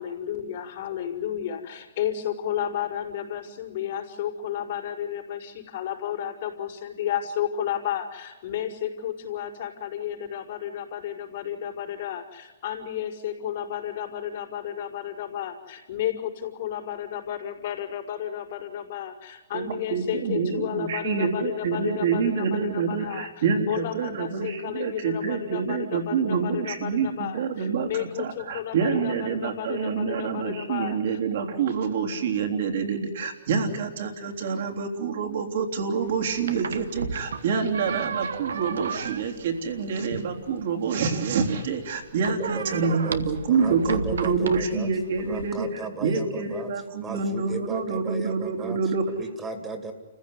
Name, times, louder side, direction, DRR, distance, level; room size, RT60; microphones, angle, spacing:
voice 1, 0.0-31.2, left 10 dB, 60° left, -2 dB, 4.9 m, -32 dB
voice 2, 19.5-45.7 46.0-49.0, right 5 dB, 65° right, 3 dB, 3.5 m, -27 dB
Door Open Close.L, 36.0-45.6, right 5 dB, 85° right, 1.2 m, -35 dB
voice 3, 42.4-43.2 43.5-44.9 45.2-46.7 47.0-49.9, right 3 dB, 15° right, 7 dB, 2.4 m, -36 dB
29.5 x 15.5 x 9.8 m, 1.2 s
hypercardioid pair, 130°, 0 cm